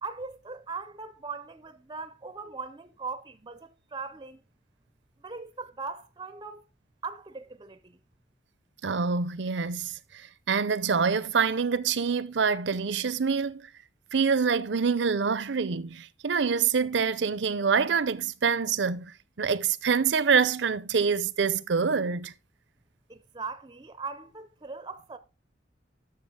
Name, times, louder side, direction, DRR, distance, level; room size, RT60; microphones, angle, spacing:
voice 1, 0.0-4.4 5.2-6.6 7.0-8.0 23.1-25.2, right 4 dB, 25° right, 0.5 m, -39 dB
voice 2, 8.8-10.0 10.5-13.6 14.1-19.1 19.4-22.3, right 5 dB, 70° right, 0.6 m, -26 dB
11.0 x 6.8 x 3.7 m
head